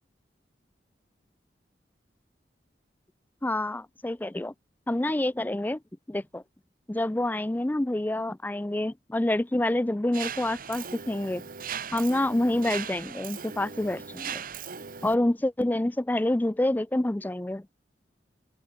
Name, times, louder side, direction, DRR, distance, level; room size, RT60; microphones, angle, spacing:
voice 1, 3.4-4.5 4.9-5.8 6.1-6.4 6.9-11.4 11.9-14.4 15.0-17.7, left 1 dB, 10° left, 0.4 m, -27 dB
Mechanisms, 10.1-15.1, right 7 dB, 50° right, 1.3 m, -38 dB
head